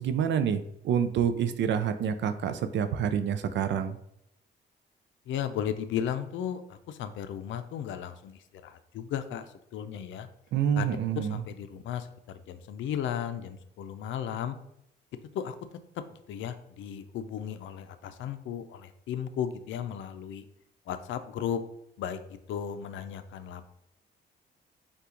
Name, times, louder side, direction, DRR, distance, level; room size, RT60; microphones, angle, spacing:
voice 1, 0.0-4.0 10.5-11.4, right 8 dB, 65° right, 9 dB, 0.4 m, -27 dB
voice 2, 5.3-9.5 9.7-10.3 10.8-14.6 15.3-15.6 16.3-20.4 20.9-21.6 22.0-22.2 22.5-23.7, left 9 dB, 75° left, 10 dB, 0.5 m, -35 dB
5.5 x 2.4 x 3.8 m, 0.79 s
cardioid pair, 90°, 20 cm